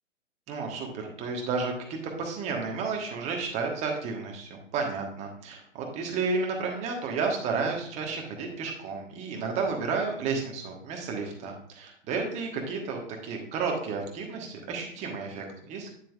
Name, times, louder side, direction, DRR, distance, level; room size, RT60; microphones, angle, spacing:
voice 1, 0.5-1.7 2.0-15.9, right 4 dB, 20° right, 1 dB, 1.4 m, -32 dB
9.5 x 7.4 x 2.4 m, 0.65 s
figure-of-eight pair, 125°, 38 cm